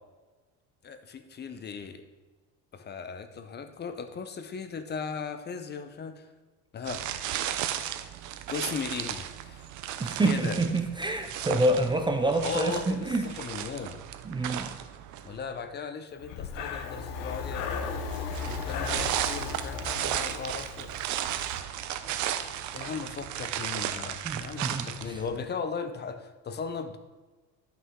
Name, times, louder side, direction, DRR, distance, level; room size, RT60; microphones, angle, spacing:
voice 1, 0.8-2.0 2.7-6.3 6.7-7.0 8.5-9.7 10.2-10.6 12.4-14.0 15.2-20.9 22.1-22.2 22.7-27.0, left 5 dB, 30° left, 9 dB, 0.7 m, -37 dB
sound 1, 6.9-15.5 18.1-25.4, right 11 dB, 60° right, 0.7 m, -35 dB
voice 2, 10.0-13.3 14.2-14.7 24.2-25.2, right 2 dB, 15° right, 5 dB, 0.5 m, -27 dB
Breathing, 16.2-21.1, left 5 dB, 75° left, 1.0 m, -35 dB
12.0 x 5.7 x 3.7 m, 1.3 s
cardioid pair, 115°, 33 cm